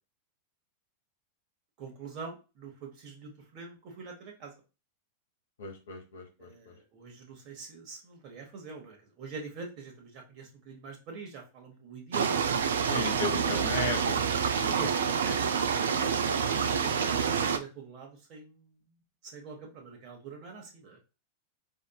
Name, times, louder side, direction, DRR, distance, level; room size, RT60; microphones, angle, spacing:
voice 1, 1.8-4.5 6.4-13.6 14.7-18.8 19.2-21.0, right 4 dB, 40° right, 1 dB, 1.2 m, -44 dB
voice 2, 5.6-6.7 12.9-14.8, left 4 dB, 65° left, 4 dB, 1.0 m, -36 dB
sound 1, 12.1-17.6, right 6 dB, 65° right, 0.4 m, -27 dB
4.9 x 2.6 x 2.3 m, 0.31 s
figure-of-eight pair, 90°, 0 cm